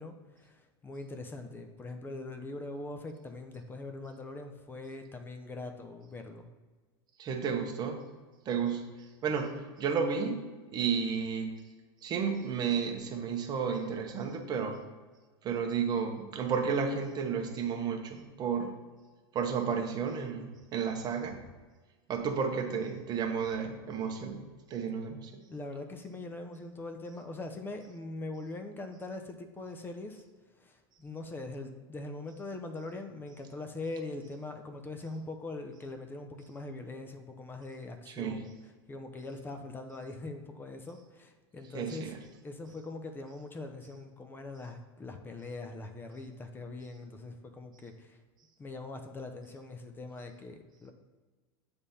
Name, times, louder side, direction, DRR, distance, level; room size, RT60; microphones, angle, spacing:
voice 1, 0.0-6.5 25.5-30.2 30.6-38.5 38.9-42.1 42.4-48.2 48.6-50.9, left 2 dB, 15° left, 6 dB, 0.6 m, -42 dB
voice 2, 7.2-8.0 8.4-8.8 9.2-10.4 10.7-11.5 12.0-14.8 15.4-18.7 19.3-21.4 22.1-24.4 24.7-25.3 38.1-38.4 41.7-42.2, right 6 dB, 30° right, 3 dB, 1.0 m, -32 dB
7.2 x 3.5 x 4.2 m, 1.3 s
supercardioid pair, 130°, 13 cm